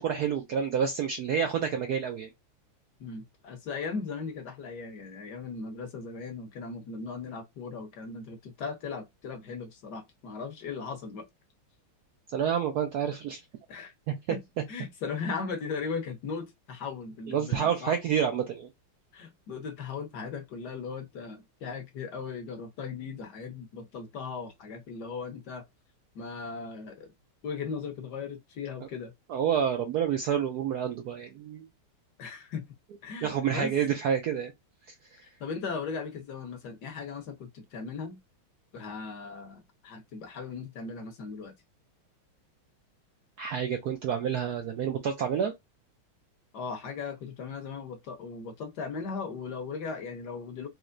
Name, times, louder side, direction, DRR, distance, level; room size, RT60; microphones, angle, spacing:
voice 1, 0.0-2.3 12.3-13.4 14.3-14.4 17.3-18.7 29.3-31.7 33.2-34.5 43.4-45.6, right 8 dB, 75° right, 0.9 m, -28 dB
voice 2, 3.0-11.3 13.7-13.9 14.3-14.4 14.7-17.9 19.1-25.6 26.1-27.1 27.4-29.1 32.2-32.7 33.0-33.7 35.4-38.2 38.7-41.5 46.5-50.7, left 5 dB, 60° left, 1.3 m, -38 dB
4.5 x 3.0 x 2.5 m
omnidirectional pair, 2.3 m